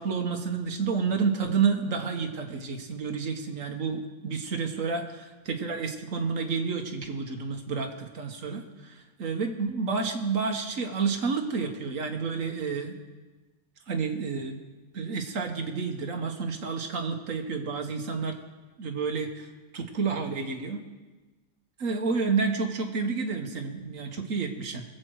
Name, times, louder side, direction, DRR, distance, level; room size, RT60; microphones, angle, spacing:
voice 1, 0.0-13.0 13.9-14.6 14.9-18.4 18.8-19.5 19.7-20.8 21.8-24.8, right 5 dB, 60° right, 4 dB, 1.6 m, -30 dB
21.5 x 7.8 x 4.7 m, 1.3 s
omnidirectional pair, 1.6 m